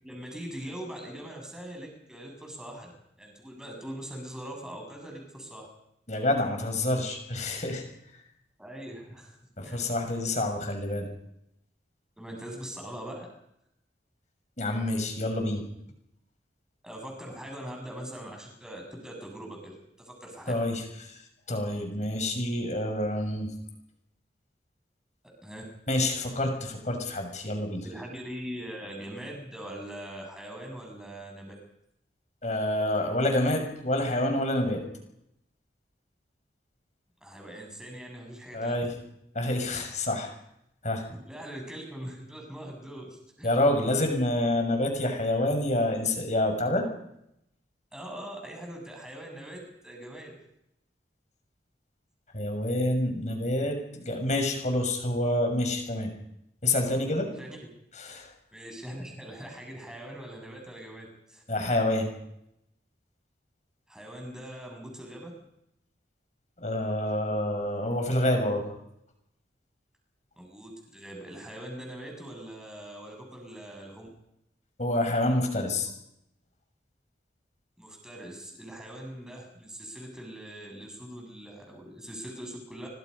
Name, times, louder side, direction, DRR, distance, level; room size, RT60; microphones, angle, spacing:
voice 1, 0.0-2.9 3.2-5.7 8.6-9.4 9.6-9.8 12.2-13.3 16.8-20.5 25.2-25.6 27.8-31.5 37.2-38.8 41.1-43.5 47.9-50.4 57.4-57.6 58.5-61.4 63.9-65.3 70.4-74.1 77.8-82.9, right 1 dB, 5° right, 1 dB, 7.7 m, -42 dB
voice 2, 6.1-7.8 9.6-11.1 14.6-15.6 20.5-21.2 21.5-23.5 25.9-27.8 32.4-34.8 38.5-38.9 39.3-40.3 40.8-41.0 43.4-46.8 52.3-56.1 56.6-57.3 58.0-58.3 61.5-62.1 66.6-68.7 74.8-75.9, left 1 dB, 40° left, 4 dB, 6.6 m, -27 dB
27.0 x 25.0 x 5.5 m, 0.78 s
head